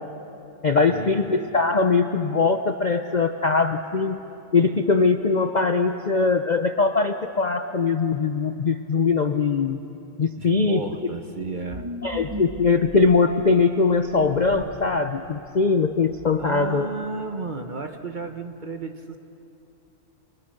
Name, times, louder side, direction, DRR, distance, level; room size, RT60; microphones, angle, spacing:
voice 1, 0.6-4.2 4.5-9.8 10.2-10.9 12.0-16.9, left 4 dB, 45° left, 7 dB, 0.6 m, -21 dB
voice 2, 10.4-11.9 16.4-19.2, right 3 dB, 35° right, 6 dB, 1.1 m, -32 dB
sound 1, 11.7-13.2 13.9-14.9 15.3-15.4 15.9-16.7, right 1 dB, 20° right, 1.4 m, -38 dB
30.0 x 25.0 x 6.6 m, 2.8 s
omnidirectional pair, 1.6 m